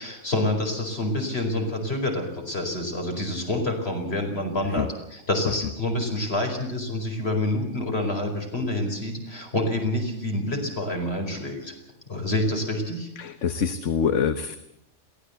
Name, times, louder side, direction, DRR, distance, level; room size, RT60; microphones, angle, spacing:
voice 1, 0.0-11.7 12.1-13.1, left 1 dB, 55° left, 3 dB, 5.2 m, -27 dB
voice 2, 13.2-14.6, left 7 dB, 75° left, 10 dB, 1.3 m, -25 dB
22.5 x 17.0 x 8.1 m, 0.76 s
omnidirectional pair, 1.3 m